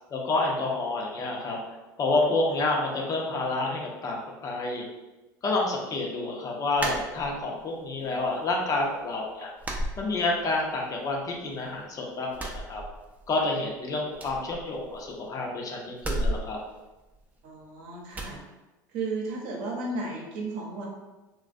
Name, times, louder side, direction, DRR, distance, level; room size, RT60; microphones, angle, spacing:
voice 1, 0.1-1.6 2.0-4.2 4.4-4.8 5.4-9.5 10.0-12.8 13.3-16.6, left 2 dB, 35° left, 0 dB, 0.6 m, -29 dB
sound 1, 6.8-7.7 8.0-8.7 9.0-9.2 9.6-10.7 11.0-11.8 12.3-13.4 13.7-13.8 14.1-15.3 15.9-17.6 18.1-18.4, right 1 dB, 15° right, 0.4 m, -34 dB
voice 2, 17.4-18.4 18.9-20.8, right 3 dB, 65° right, -2 dB, 0.8 m, -34 dB
2.4 x 2.2 x 2.4 m, 1.1 s
hypercardioid pair, 85°, 10 cm